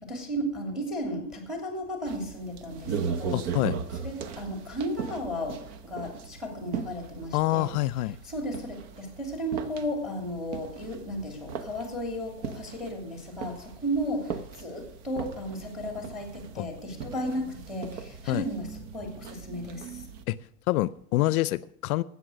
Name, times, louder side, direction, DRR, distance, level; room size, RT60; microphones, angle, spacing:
voice 1, 0.0-3.4 4.0-7.7 8.2-18.7 18.9-20.0, equal, ahead, 2.9 m, -34 dB
sound 1, 2.1-20.2, right 6 dB, 50° right, 1.1 m, -39 dB
voice 2, 3.3-3.8 7.3-8.2 16.6-16.7 18.3-18.5 20.3-20.4 20.7-22.0, left 16 dB, 70° left, 0.5 m, -26 dB
13.0 x 8.3 x 6.3 m
supercardioid pair, 135°, 47 cm